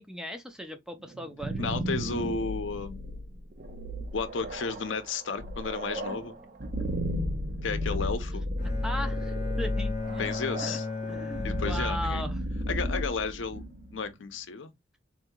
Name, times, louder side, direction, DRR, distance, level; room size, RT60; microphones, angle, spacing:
voice 1, 0.0-1.7 7.9-8.0 8.8-10.4 10.6-10.8 11.1-12.4, equal, 5° right, 0.5 m, -38 dB
sound 1, 1.1-14.0, equal, 45° right, 0.6 m, -33 dB
voice 2, 1.6-3.0 4.1-6.3 7.6-8.4 10.2-10.9 11.4-12.2 12.7-13.6 13.9-14.7, left 5 dB, 80° left, 0.6 m, -33 dB
Bowed string instrument, 8.6-12.7, left 4 dB, 45° left, 0.8 m, -36 dB
3.9 x 2.7 x 2.2 m
head